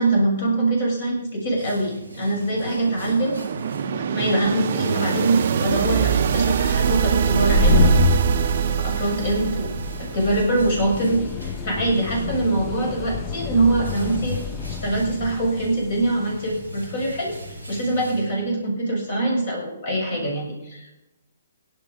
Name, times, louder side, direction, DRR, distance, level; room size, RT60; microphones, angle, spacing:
voice 1, 0.0-3.4 3.7-7.9 8.7-9.7 10.1-14.4 14.7-17.3 17.7-20.9, right 2 dB, 45° left, -1 dB, 7.1 m, -23 dB
sound 1, 1.0-18.8, right 1 dB, 85° left, 5.4 m, -43 dB
sound 2, 2.0-10.9, right 8 dB, 45° right, 0.6 m, -23 dB
sound 3, 7.4-17.7, left 4 dB, 20° left, 0.9 m, -27 dB
16.5 x 11.5 x 5.5 m, 0.90 s
figure-of-eight pair, 125°, 0 cm